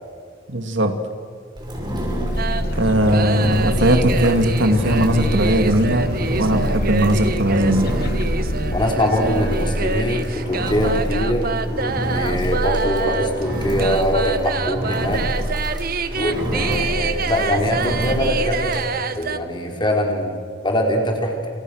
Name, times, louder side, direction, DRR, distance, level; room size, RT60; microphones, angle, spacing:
voice 1, 0.5-1.0 2.8-6.1 6.4-7.9, right 1 dB, 75° right, 6 dB, 2.5 m, -18 dB
Engine, 1.6-18.9, equal, 25° right, 6.4 m, -26 dB
sound 1, 2.3-8.9, left 1 dB, 55° left, 1.3 m, -29 dB
sound 2, 2.4-19.4, right 4 dB, 55° right, 1.2 m, -27 dB
voice 2, 8.7-15.2 16.1-18.9 19.1-20.4 20.6-21.3, equal, 25° left, 1 dB, 4.6 m, -22 dB
28.5 x 28.0 x 6.6 m, 2.2 s
head